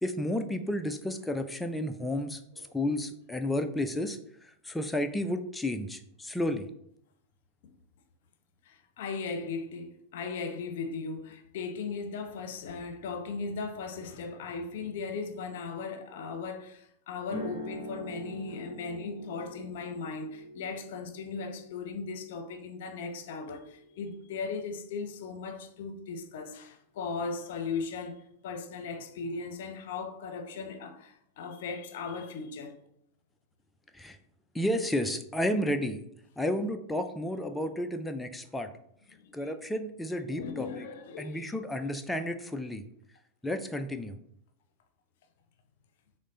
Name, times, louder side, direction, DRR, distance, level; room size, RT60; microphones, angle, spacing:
voice 1, 0.0-2.4 2.7-6.7 33.9-34.2 34.5-36.0 36.4-38.7 39.3-40.8 41.2-42.8 43.4-44.2, left 1 dB, 5° left, 0.4 m, -32 dB
voice 2, 8.6-32.8 39.1-39.4 40.3-41.4, left 4 dB, 55° left, 0.6 m, -37 dB
sound 1, 17.2-25.3, right 1 dB, 50° right, 1.1 m, -45 dB
6.3 x 2.1 x 3.8 m
figure-of-eight pair, 90°, 0 cm